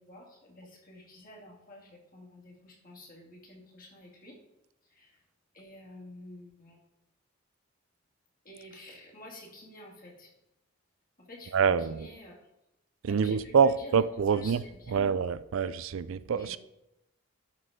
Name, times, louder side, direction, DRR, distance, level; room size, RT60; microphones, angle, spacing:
voice 1, 0.0-4.4 4.8-5.2 5.5-6.8 8.4-10.3 11.2-12.5 13.0-14.0 14.3-15.1 16.3-16.6, left 1 dB, 40° left, -3 dB, 2.4 m, -49 dB
voice 2, 11.5-12.1 13.0-14.6 14.9-16.6, right 6 dB, 75° right, 15 dB, 0.4 m, -26 dB
11.5 x 4.2 x 5.0 m, 0.88 s
head